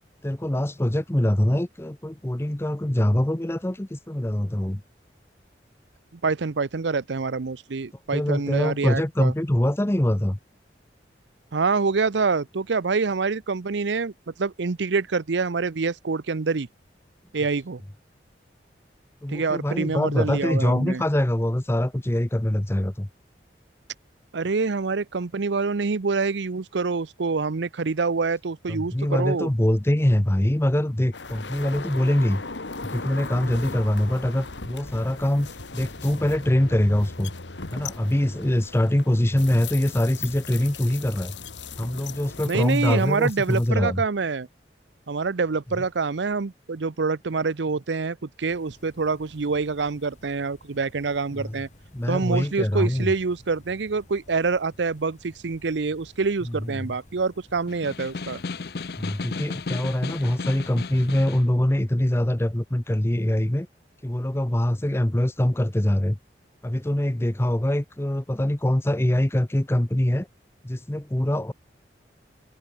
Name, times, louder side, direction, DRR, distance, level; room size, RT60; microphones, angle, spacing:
voice 1, 0.2-4.8 8.1-10.4 19.2-23.1 28.7-32.4 32.8-37.3 37.7-41.3 41.8-44.0 45.8-45.9 51.3-51.5 51.9-53.1 56.4-56.7 59.0-63.7 64.0-66.2 66.6-70.3 70.6-71.5, left 1 dB, 15° left, 0.7 m, -24 dB
voice 2, 6.2-9.3 11.5-14.1 14.4-16.7 17.3-17.8 19.3-21.0 24.3-29.5 42.5-44.5 45.1-51.7 52.1-58.4, right 4 dB, 85° right, 0.7 m, -26 dB
sound 1, 31.1-43.7, left 4 dB, 85° left, 1.9 m, -38 dB
sound 2, 48.5-61.2, left 1 dB, 40° left, 4.3 m, -54 dB
Snare drum, 57.7-61.5, left 4 dB, 60° left, 0.6 m, -34 dB
head